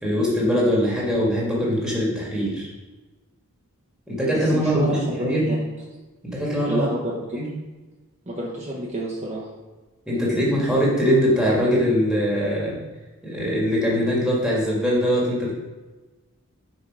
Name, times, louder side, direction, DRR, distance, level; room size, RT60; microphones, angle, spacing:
voice 1, 0.0-2.7 4.1-5.5 6.2-6.9 7.3-7.4 10.1-12.8 13.2-15.5, equal, 5° right, -5 dB, 1.9 m, -22 dB
voice 2, 4.3-5.6 6.6-7.4 8.3-9.5, equal, 30° right, -5 dB, 1.1 m, -28 dB
6.1 x 4.9 x 4.7 m, 1.2 s
head